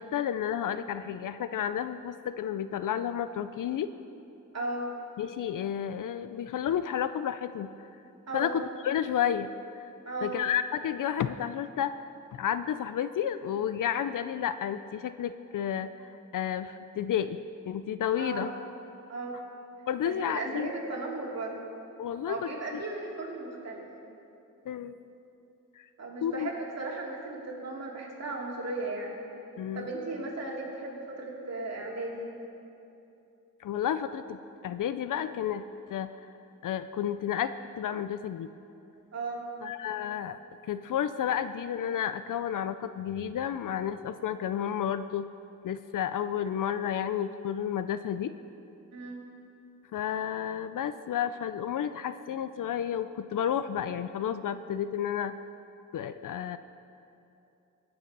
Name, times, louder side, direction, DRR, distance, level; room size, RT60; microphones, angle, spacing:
voice 1, 0.0-3.9 5.2-7.9 8.3-9.5 10.2-17.4 17.7-18.5 19.9-20.7 22.0-22.8 24.7-25.0 25.8-25.9 26.2-26.5 29.6-29.9 33.6-35.6 35.9-36.1 36.6-38.5 39.6-40.4 40.7-45.3 45.6-48.3 49.9-55.3 55.9-56.6, left 9 dB, 70° left, 12 dB, 0.5 m, -31 dB
voice 2, 4.5-4.9 8.3-8.5 10.1-10.3 18.2-18.4 19.1-19.4 20.0-21.6 22.2-23.8 26.0-29.1 29.7-32.3 39.1-39.4 48.9-49.2, right 2 dB, 50° right, -3 dB, 2.6 m, -36 dB
20.5 x 6.9 x 5.4 m, 2.8 s
wide cardioid pair, 130°, 33 cm